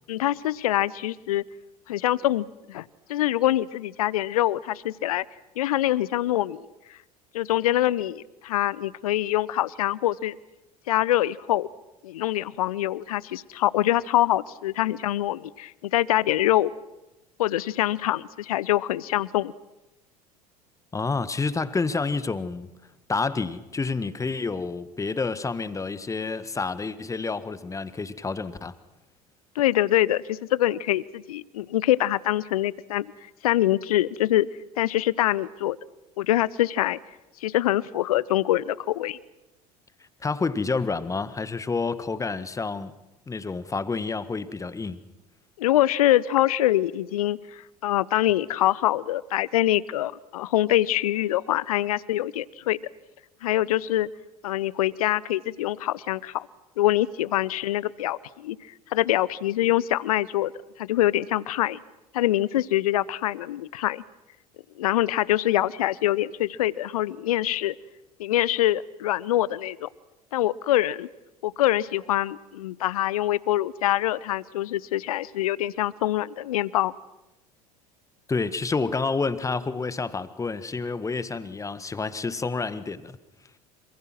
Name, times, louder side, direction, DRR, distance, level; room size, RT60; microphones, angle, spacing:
voice 1, 0.1-1.4 1.9-2.8 3.1-5.2 5.6-6.6 7.3-10.3 10.9-11.7 12.0-16.7 17.4-19.5 29.6-33.1 33.4-34.5 34.8-35.8 36.2-37.0 37.4-39.2 45.6-52.8 53.4-54.1 54.4-56.5 56.8-58.6 58.9-60.5 60.8-61.8 62.1-64.0 64.8-67.7 68.2-69.9 70.3-71.1 71.4-76.9, left 14 dB, 65° left, 0.8 m, -24 dB
voice 2, 20.9-22.7 23.1-28.7 40.2-42.9 43.3-45.0 78.3-83.2, left 4 dB, 15° left, 1.5 m, -29 dB
27.5 x 26.5 x 6.2 m
figure-of-eight pair, 70°, 20 cm